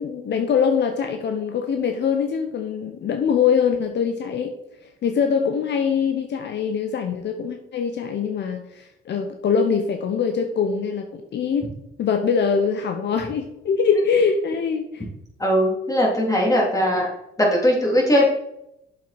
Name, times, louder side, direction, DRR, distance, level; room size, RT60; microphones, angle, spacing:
voice 1, 0.0-4.5 5.0-11.7 12.0-15.0, left 6 dB, 60° left, 5 dB, 0.9 m, -23 dB
voice 2, 15.4-17.1 17.4-18.3, equal, 15° left, -2 dB, 3.1 m, -19 dB
7.5 x 7.1 x 4.3 m, 0.82 s
cardioid pair, 90°, 20 cm